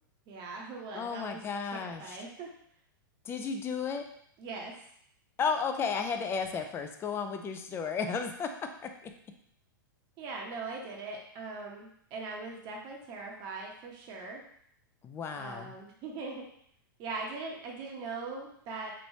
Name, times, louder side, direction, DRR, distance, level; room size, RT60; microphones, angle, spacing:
voice 1, 0.3-1.4 1.8-2.5 4.4-4.8 10.2-14.4 15.4-16.4 17.0-18.9, right 3 dB, 40° right, -1 dB, 0.9 m, -40 dB
voice 2, 0.9-2.2 3.3-4.0 5.4-8.5 8.8-8.9 15.0-15.7, left 5 dB, 20° left, 6 dB, 0.4 m, -33 dB
3.2 x 3.0 x 2.7 m, 0.68 s
hypercardioid pair, 115°, 11 cm